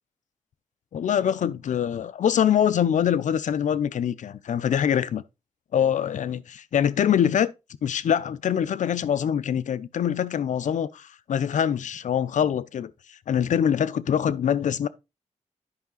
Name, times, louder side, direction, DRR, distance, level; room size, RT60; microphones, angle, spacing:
voice 1, 0.9-5.2 5.7-7.5 7.8-14.9, left 9 dB, 85° left, 0.6 m, -24 dB
9.8 x 5.7 x 3.9 m
wide cardioid pair, 90°, 13 cm